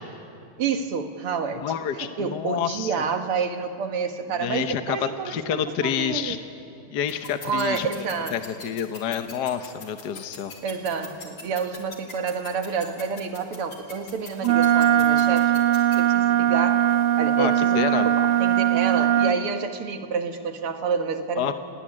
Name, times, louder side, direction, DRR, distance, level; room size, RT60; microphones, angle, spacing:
voice 1, 0.6-1.7 2.0-6.4 7.4-8.4 10.6-15.6 16.0-16.8 17.2-21.5, right 5 dB, 85° right, 6 dB, 2.5 m, -29 dB
voice 2, 1.6-2.9 4.4-6.4 6.9-7.9 8.3-10.5 17.4-18.1 21.4-21.5, left 9 dB, 60° left, 8 dB, 1.4 m, -28 dB
sound 1, 7.1-16.0, left 4 dB, 85° left, 4.1 m, -40 dB
Wind instrument woodwind instrument, 14.4-19.4, right 11 dB, 60° right, 1.4 m, -20 dB
27.5 x 18.5 x 9.9 m, 2.6 s
omnidirectional pair, 2.4 m